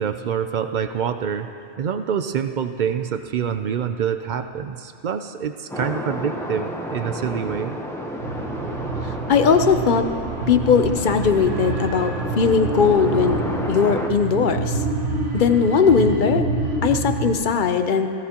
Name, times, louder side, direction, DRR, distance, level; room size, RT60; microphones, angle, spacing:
voice 1, 0.0-1.5 1.8-7.8, right 7 dB, 60° right, 8 dB, 0.5 m, -26 dB
sound 1, 5.7-14.1, equal, 5° left, 0.7 m, -32 dB
sound 2, 8.2-17.3, right 3 dB, 75° right, 1.4 m, -27 dB
voice 2, 9.3-10.1 10.5-13.4 13.7-14.8 15.3-16.5 16.8-18.1, left 6 dB, 50° left, 7 dB, 0.7 m, -19 dB
18.0 x 15.0 x 2.9 m, 2.5 s
omnidirectional pair, 1.2 m